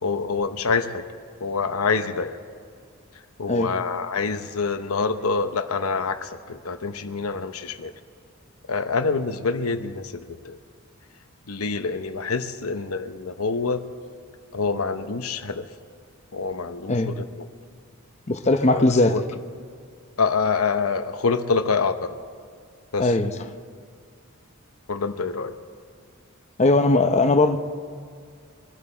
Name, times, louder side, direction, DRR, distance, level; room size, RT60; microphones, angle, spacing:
voice 1, 0.0-1.0 1.4-2.4 3.4-7.9 8.7-10.6 11.5-13.8 14.5-15.7 16.3-17.5 18.7-19.2 20.2-22.2 22.9-23.1 24.9-25.6, left 4 dB, 85° left, 9 dB, 0.9 m, -26 dB
voice 2, 18.3-19.1 23.0-23.3 26.6-27.6, left 2 dB, 30° left, 7 dB, 0.7 m, -19 dB
23.5 x 12.5 x 4.4 m, 2.2 s
head